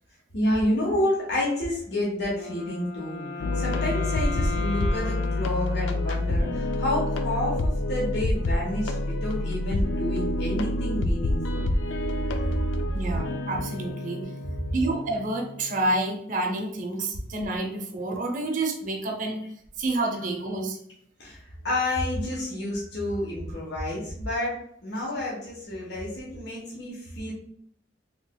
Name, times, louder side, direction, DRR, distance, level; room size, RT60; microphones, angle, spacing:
voice 1, 0.3-3.3 3.5-11.6 13.0-13.1 21.2-24.5 24.8-27.3, left 1 dB, 65° left, -5 dB, 1.1 m, -29 dB
Wind instrument woodwind instrument, 2.3-6.5, left 2 dB, 35° left, 0.6 m, -36 dB
sound 1, 3.4-16.0, left 1 dB, 85° left, 0.4 m, -28 dB
voice 2, 12.9-14.2 14.7-19.4 19.8-20.8, right 2 dB, 45° right, 1 dB, 0.6 m, -28 dB
3.3 x 3.0 x 2.2 m, 0.71 s
head